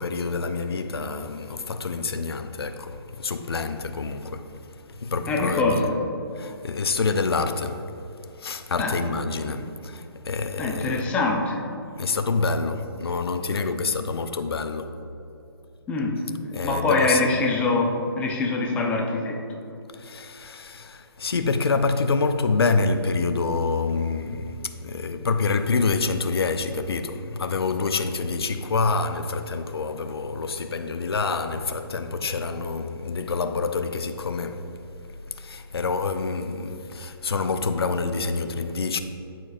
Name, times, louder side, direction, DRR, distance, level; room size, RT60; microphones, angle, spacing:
voice 1, 0.0-4.6 4.9-5.8 6.3-7.9 8.4-11.1 12.0-14.9 16.5-17.3 19.9-34.7 35.3-39.0, left 4 dB, 75° left, 0.5 m, -27 dB
voice 2, 5.3-5.9 8.8-8.9 10.6-11.6 15.9-16.2 16.6-19.4, left 3 dB, 10° left, 0.6 m, -24 dB
13.0 x 4.6 x 2.4 m
figure-of-eight pair, 145°, 13 cm